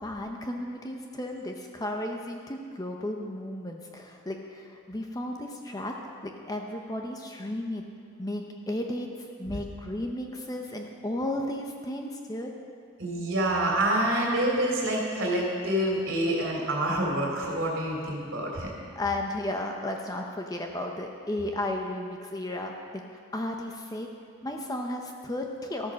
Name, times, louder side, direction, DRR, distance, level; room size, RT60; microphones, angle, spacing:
voice 1, 0.0-5.9 6.2-7.9 8.2-12.5 19.0-23.0 23.3-24.1 24.4-25.9, left 1 dB, 15° left, 2 dB, 0.7 m, -34 dB
voice 2, 13.0-18.7, right 1 dB, 60° right, -2 dB, 3.0 m, -27 dB
13.5 x 8.8 x 6.3 m, 2.3 s
head